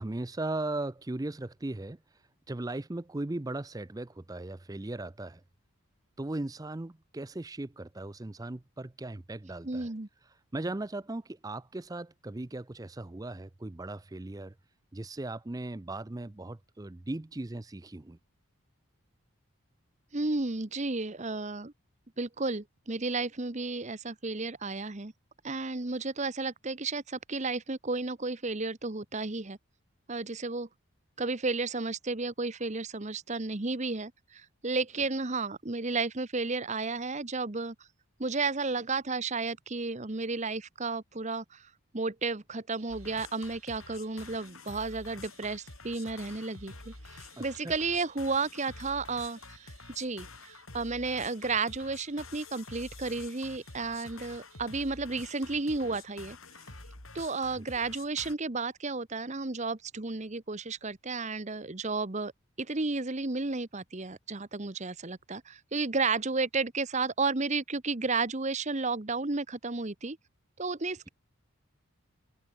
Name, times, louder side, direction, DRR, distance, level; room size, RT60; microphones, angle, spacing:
voice 1, 0.0-5.4 6.2-9.9 10.2-14.5 14.9-18.2 35.0-35.1 47.4-47.8, right 2 dB, 15° right, 0.5 m, -38 dB
voice 2, 9.6-10.1 20.1-21.7 22.2-25.1 25.4-29.6 30.1-30.7 31.2-37.7 38.2-41.7 41.9-56.4 57.1-62.3 62.6-70.2 70.6-71.1, right 3 dB, 30° right, 1.0 m, -33 dB
sound 1, 42.8-56.2, right 13 dB, 80° right, 5.0 m, -62 dB
sound 2, 42.9-58.3, left 3 dB, 70° left, 6.0 m, -49 dB
head